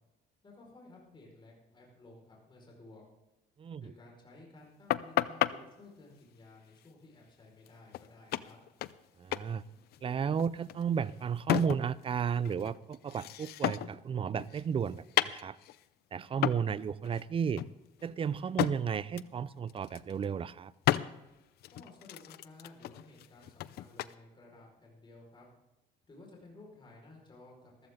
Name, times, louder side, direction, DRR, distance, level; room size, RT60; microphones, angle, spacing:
voice 1, 0.4-3.0 3.8-8.6 21.7-25.5 26.1-27.9, left 2 dB, 25° left, -2 dB, 5.0 m, -55 dB
voice 2, 3.6-3.9 9.2-9.6 10.0-15.6 16.1-17.6 18.0-20.7, right 7 dB, 30° right, 19 dB, 0.5 m, -33 dB
sound 1, 4.9-5.5 7.7-7.8 7.9-8.1 8.3-9.1 9.3-9.5 9.8-12.0 12.4-14.0 14.4-15.8 16.4-16.7 17.0-17.2 17.6-18.8 19.2-19.4 19.7-20.3 20.8-21.1 21.6-24.1, left 14 dB, 70° left, 0.6 m, -33 dB
15.0 x 13.5 x 3.8 m, 0.99 s
cardioid pair, 110°, 17 cm